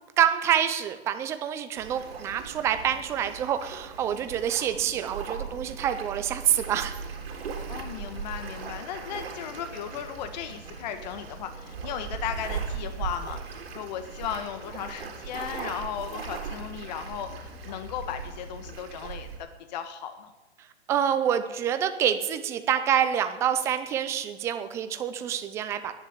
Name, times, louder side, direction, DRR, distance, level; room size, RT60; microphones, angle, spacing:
voice 1, 0.2-7.0 20.9-25.9, right 9 dB, 10° right, 10 dB, 0.4 m, -27 dB
sound 1, 1.7-19.4, right 6 dB, 60° right, 3.9 m, -39 dB
sound 2, 6.6-18.7, left 3 dB, 80° left, 6.2 m, -49 dB
voice 2, 7.7-20.3, left 9 dB, 40° left, 8 dB, 1.4 m, -36 dB
11.0 x 10.5 x 9.5 m, 1.1 s
hypercardioid pair, 150°, 33 cm